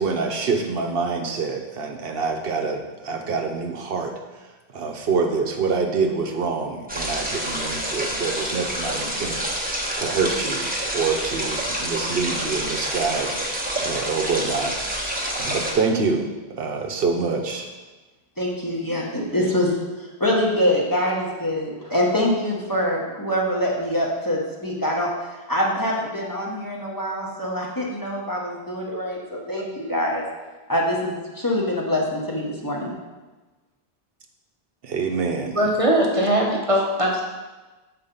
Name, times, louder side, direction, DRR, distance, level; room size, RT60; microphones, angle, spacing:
voice 1, 0.0-4.1 4.7-14.7 15.4-16.3 16.6-17.7 29.6-29.7 34.8-35.6, right 4 dB, 70° right, 3 dB, 0.9 m, -26 dB
sound 1, 6.9-15.7, right 1 dB, 10° right, 1.1 m, -28 dB
voice 2, 18.4-19.7 20.0-25.1 25.5-30.2 30.7-32.9, left 1 dB, 20° left, -4 dB, 1.1 m, -24 dB
voice 3, 35.5-37.2, right 1 dB, 35° right, -1 dB, 0.8 m, -20 dB
7.1 x 4.3 x 5.3 m, 1.2 s
omnidirectional pair, 1.0 m